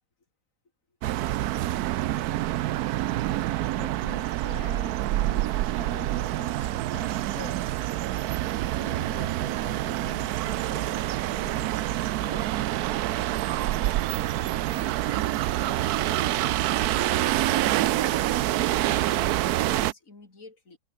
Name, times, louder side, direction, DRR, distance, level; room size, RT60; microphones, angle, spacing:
sound 1, 1.0-19.9, right 14 dB, 70° right, 0.9 m, -27 dB
voice 1, 3.7-5.5 5.7-7.9 8.8-12.6, left 7 dB, 90° left, 2.8 m, -45 dB
voice 2, 13.4-18.6 19.0-20.8, left 3 dB, 40° left, 4.6 m, -49 dB
omnidirectional pair, 2.1 m